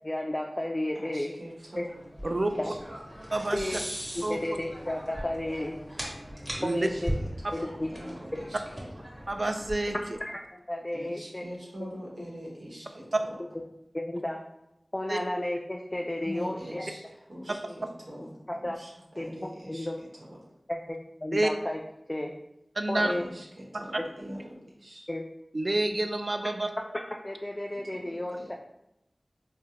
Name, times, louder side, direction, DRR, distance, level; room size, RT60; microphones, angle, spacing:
voice 1, 0.0-1.3 2.6-2.7 3.5-3.8 4.1-5.8 6.6-7.1 7.5-7.9 10.2-11.5 11.8-11.9 13.9-14.4 14.9-16.9 17.6-17.8 18.5-18.8 19.2-20.0 20.7-21.8 22.1-22.3 22.9-23.2 25.1-25.2 27.2-28.5, left 1 dB, 35° left, 1 dB, 0.3 m, -33 dB
voice 2, 0.9-2.7 6.6-8.9 10.9-13.4 16.2-18.3 18.6-19.9 20.2-20.4 23.0-25.1 27.7-28.5, equal, 80° right, -5 dB, 1.0 m, -44 dB
sound 1, 1.7-10.3, equal, 20° right, 1.2 m, -39 dB
voice 3, 3.3-3.8 4.2-4.4 6.6-6.9 9.3-9.9 15.1-15.2 21.3-21.5 22.8-23.1 23.7-23.8 25.5-26.7, right 2 dB, 55° right, 6 dB, 0.3 m, -28 dB
3.6 x 2.1 x 2.8 m, 0.83 s
wide cardioid pair, 40°, 0 cm